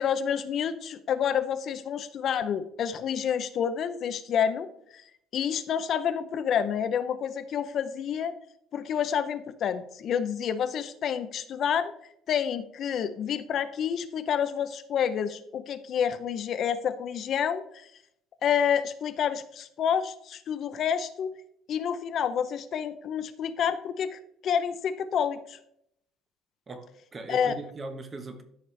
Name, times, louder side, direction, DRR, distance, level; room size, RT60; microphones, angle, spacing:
voice 1, 0.0-4.7 5.3-8.3 8.7-11.9 12.3-17.9 18.4-21.3 21.7-25.6 27.3-27.6, left 8 dB, 50° left, 0.6 m, -28 dB
voice 2, 26.7-28.4, right 3 dB, 25° right, 1.1 m, -40 dB
13.5 x 5.1 x 3.2 m
cardioid pair, 125°, 0 cm